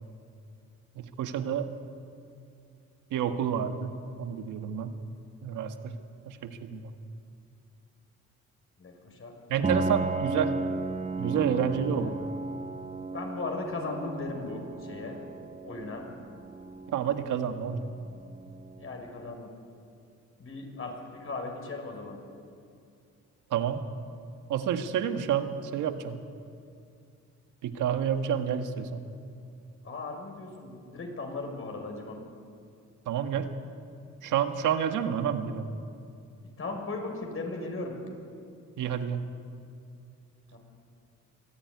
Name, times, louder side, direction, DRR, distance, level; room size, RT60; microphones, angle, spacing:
voice 1, 0.9-1.7 3.1-4.9 5.4-5.9 6.3-6.9 9.5-10.5 11.2-12.2 16.9-17.9 23.5-23.8 24.5-26.2 27.6-29.0 33.1-33.5 34.2-35.6 38.8-39.2, right 8 dB, 85° right, 7 dB, 1.7 m, -29 dB
voice 2, 8.8-9.3 10.2-10.5 11.6-12.2 13.1-15.2 15.6-16.0 18.8-19.5 20.4-22.2 29.8-32.2 36.6-37.9 40.5-40.6, left 3 dB, 45° left, 2 dB, 5.6 m, -37 dB
Piano, 9.6-19.2, right 3 dB, 25° right, 0.9 m, -35 dB
23.5 x 15.5 x 9.6 m, 2.4 s
cardioid pair, 90°, 30 cm